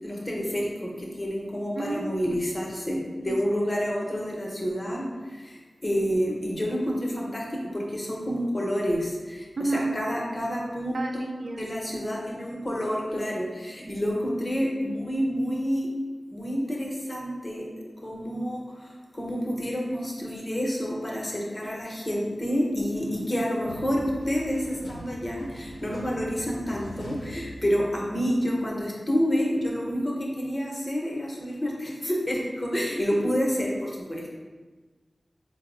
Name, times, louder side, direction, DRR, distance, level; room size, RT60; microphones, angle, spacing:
voice 1, 0.0-11.0 11.6-15.9 16.3-17.7 18.0-34.4, equal, 30° left, -2 dB, 0.8 m, -29 dB
voice 2, 1.8-2.4 3.3-3.4 9.6-9.9 10.9-11.6 13.8-14.0 33.0-33.2, right 2 dB, 75° right, 3 dB, 0.3 m, -31 dB
sound 1, 23.7-28.2, equal, 75° left, 0.5 m, -42 dB
4.1 x 2.0 x 3.8 m, 1.3 s
wide cardioid pair, 60°, 0 cm